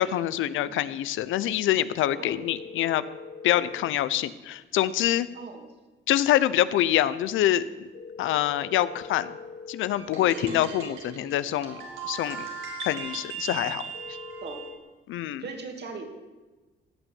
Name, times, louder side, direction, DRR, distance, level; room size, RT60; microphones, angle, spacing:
voice 1, 0.0-3.0 3.4-5.3 6.1-7.9 8.2-9.3 9.7-12.5 12.8-13.8 15.1-15.4, left 12 dB, 85° left, 16 dB, 0.7 m, -25 dB
sound 1, 2.0-3.9 7.9-9.9 13.9-14.8, left 5 dB, 65° left, 4.0 m, -42 dB
voice 2, 5.3-5.7 10.4-10.6 14.4-14.7 15.4-16.1, right 4 dB, 60° right, 4 dB, 2.8 m, -39 dB
sound 2, 10.0-14.7, right 6 dB, 85° right, 3.2 m, -38 dB
17.0 x 6.0 x 9.6 m, 1.2 s
cardioid pair, 90°, 20 cm